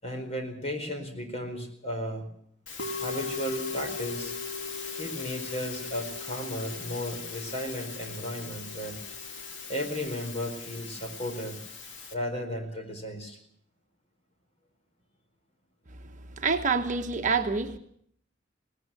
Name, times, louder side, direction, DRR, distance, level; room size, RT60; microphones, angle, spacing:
voice 1, 0.0-2.3 2.9-4.3 5.0-9.0 9.7-11.6 12.1-13.4, equal, 35° left, 5 dB, 4.6 m, -34 dB
Musical instrument, 2.7-12.1, left 4 dB, 75° left, 2.7 m, -38 dB
voice 2, 16.4-17.8, right 4 dB, 40° right, 5 dB, 1.3 m, -26 dB
19.5 x 19.0 x 7.7 m, 0.65 s
head